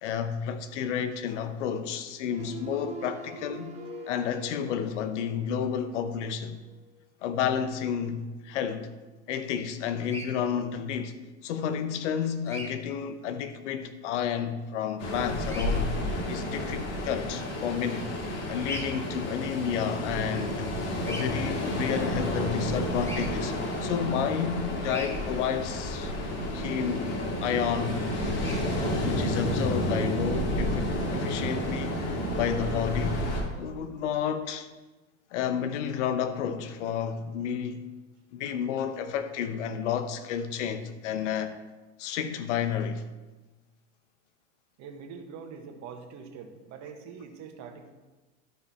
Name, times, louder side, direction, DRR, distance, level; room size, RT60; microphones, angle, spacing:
voice 1, 0.0-3.8 4.1-6.6 7.2-8.9 9.3-11.2 11.4-16.0 16.3-18.1 18.5-20.7 21.0-23.5 23.8-26.1 26.5-28.1 28.7-33.2 33.6-34.7 35.3-37.9 38.3-41.6 42.0-43.1, left 8 dB, 80° left, 1.0 m, -31 dB
sound 1, 2.3-6.3 6.6-6.9, right 2 dB, 20° right, 1.4 m, -43 dB
Bird vocalization bird call bird song, 10.0-10.3 12.4-12.7 15.4-15.7 18.6-18.9 21.0-21.3 23.0-23.3 24.8-25.1 28.3-28.6, equal, 5° left, 1.6 m, -38 dB
Ocean, 15.0-33.4, equal, 45° left, 2.6 m, -31 dB
voice 2, 44.8-47.9, right 6 dB, 50° right, 1.6 m, -44 dB
12.5 x 5.6 x 4.3 m
supercardioid pair, 110°, 36 cm